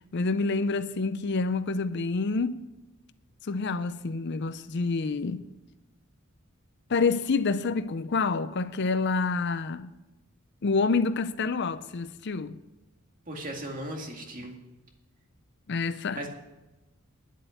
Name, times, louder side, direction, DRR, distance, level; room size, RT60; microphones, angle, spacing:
voice 1, 0.1-2.6 3.4-5.4 6.9-9.9 10.6-12.6 15.7-16.3, left 4 dB, 55° left, 0.5 m, -28 dB
voice 2, 13.3-14.5 16.1-16.3, right 1 dB, 40° right, 2.1 m, -36 dB
10.0 x 7.9 x 9.0 m
head